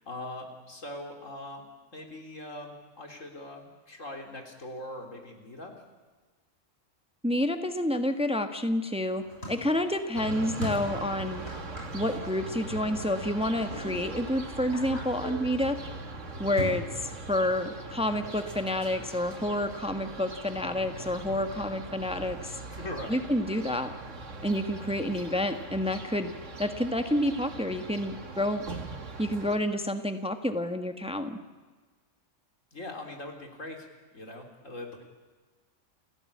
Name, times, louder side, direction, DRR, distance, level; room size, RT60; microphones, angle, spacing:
voice 1, 0.0-1.6 1.9-5.7 16.3-16.6 22.7-23.2 32.7-35.0, left 1 dB, 85° left, 3 dB, 4.0 m, -41 dB
voice 2, 7.2-11.4 11.9-15.8 16.4-22.6 23.1-23.9 24.4-26.3 26.6-28.7 29.2-31.4, left 1 dB, 5° right, 7 dB, 1.3 m, -29 dB
sound 1, 9.1-16.8, left 1 dB, 55° left, 7.3 m, -42 dB
sound 2, 10.1-29.6, right 3 dB, 75° right, 2.4 m, -41 dB
29.5 x 16.0 x 8.6 m, 1.4 s
omnidirectional pair, 1.3 m